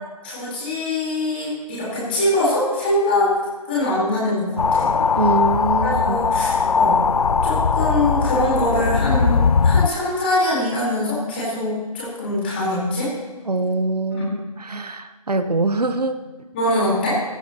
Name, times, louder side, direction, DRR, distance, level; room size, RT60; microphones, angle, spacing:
voice 1, 0.2-3.4 3.6-4.9 5.8-7.1 7.4-13.1 16.5-17.2, left 1 dB, 15° left, -7 dB, 4.0 m, -23 dB
sound 1, 4.6-9.9, left 5 dB, 65° left, 0.5 m, -19 dB
voice 2, 5.1-6.2 13.5-16.2, right 3 dB, 80° right, 9 dB, 1.1 m, -23 dB
18.0 x 14.5 x 3.0 m, 1.3 s
figure-of-eight pair, 170°, 20 cm